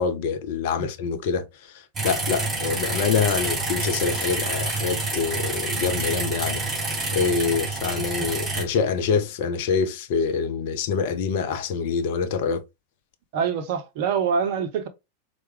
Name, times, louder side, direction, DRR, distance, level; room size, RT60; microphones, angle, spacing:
voice 1, 0.0-6.6 7.1-12.6, left 5 dB, 50° left, 0.5 m, -25 dB
sound 1, 1.9-8.6, right 2 dB, 15° right, 2.0 m, -28 dB
voice 2, 13.3-14.9, right 6 dB, 50° right, 0.6 m, -25 dB
4.5 x 2.1 x 3.1 m
figure-of-eight pair, 90°, 0 cm